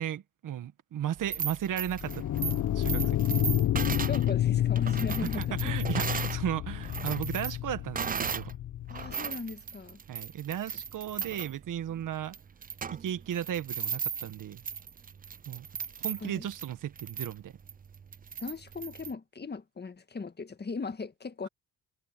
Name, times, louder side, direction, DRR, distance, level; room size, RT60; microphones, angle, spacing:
voice 1, 0.0-2.3 2.7-3.2 5.4-8.5 10.1-12.4 12.9-14.6 15.5-15.7 16.0-17.6, right 10 dB, 65° right, 1.7 m, -35 dB
sound 1, 1.2-6.4 6.8-8.5 8.9-19.1, right 6 dB, 25° right, 0.5 m, -37 dB
sound 2, 1.9-9.1, left 12 dB, 60° left, 0.8 m, -29 dB
voice 2, 4.1-5.6 8.9-10.0 16.2-16.5 18.4-21.5, left 4 dB, 30° left, 1.8 m, -38 dB
cardioid pair, 75°, 34 cm